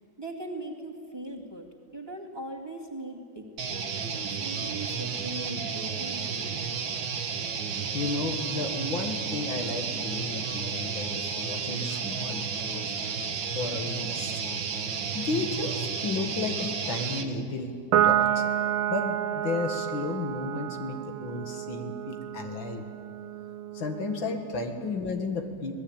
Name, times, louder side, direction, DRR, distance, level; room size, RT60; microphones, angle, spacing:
voice 1, 0.0-1.7 1.9-4.0 4.4-6.6, right 1 dB, 10° right, 1 dB, 2.4 m, -40 dB
sound 1, 3.6-17.3, right 6 dB, 70° right, 2.1 m, -32 dB
voice 2, 7.9-12.8 13.5-14.6 15.1-18.4 18.9-22.8 23.7-25.7, left 3 dB, 75° left, 5 dB, 2.5 m, -33 dB
Piano, 17.9-24.6, right 11 dB, 90° right, 1.5 m, -29 dB
25.5 x 18.5 x 8.9 m, 2.5 s
omnidirectional pair, 2.2 m